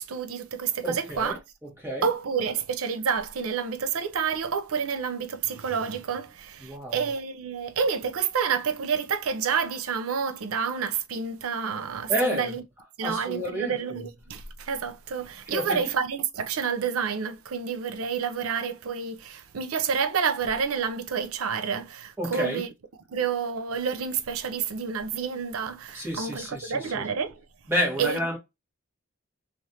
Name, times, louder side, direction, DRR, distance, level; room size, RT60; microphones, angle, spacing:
voice 1, 0.0-1.4 2.0-12.6 13.0-22.7 23.1-27.4 28.0-28.2, right 6 dB, 90° right, 0.5 m, -29 dB
voice 2, 0.8-1.4 1.8-2.1 6.7-7.1 12.1-12.5 13.0-13.7 15.5-15.8 22.2-22.6 25.9-26.9 27.7-28.4, equal, 10° right, 1.3 m, -29 dB
3.2 x 2.5 x 2.7 m
head